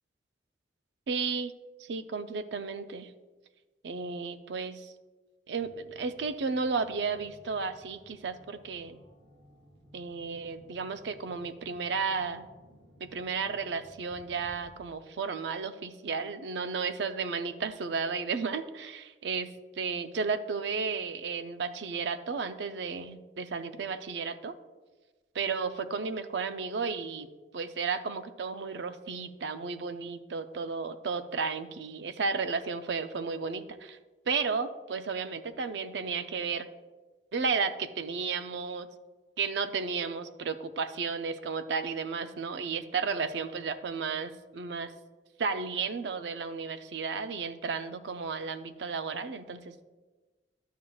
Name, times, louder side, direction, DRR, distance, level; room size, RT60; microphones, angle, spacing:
voice 1, 1.1-1.5 1.8-3.1 3.8-4.9 5.5-9.0 9.9-12.4 13.0-24.5 25.3-27.3 27.5-34.0 34.3-36.7 37.3-38.9 39.4-44.9 45.4-49.8, right 5 dB, 75° right, 11 dB, 0.5 m, -33 dB
sound 1, 5.5-14.7, equal, 90° right, 1.6 m, -58 dB
11.0 x 7.3 x 2.3 m, 1.3 s
head